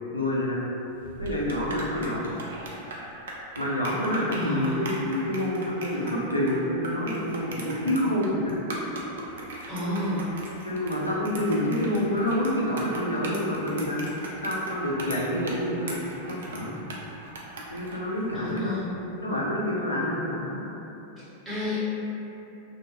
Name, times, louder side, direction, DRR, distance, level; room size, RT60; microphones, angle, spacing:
voice 1, 0.1-0.6 1.2-2.3 3.6-8.5 10.6-14.0 14.4-16.0 16.3-16.9 17.7-18.8 19.2-20.6, left 1 dB, 85° left, -5 dB, 0.4 m, -27 dB
sound 1, 0.9-18.7, right 2 dB, 65° right, 0.3 m, -39 dB
voice 2, 4.3-4.7 9.7-10.3 18.3-18.9 21.4-21.8, left 1 dB, ahead, -14 dB, 1.1 m, -30 dB
2.5 x 2.2 x 2.5 m, 2.9 s
figure-of-eight pair, 90°, 0 cm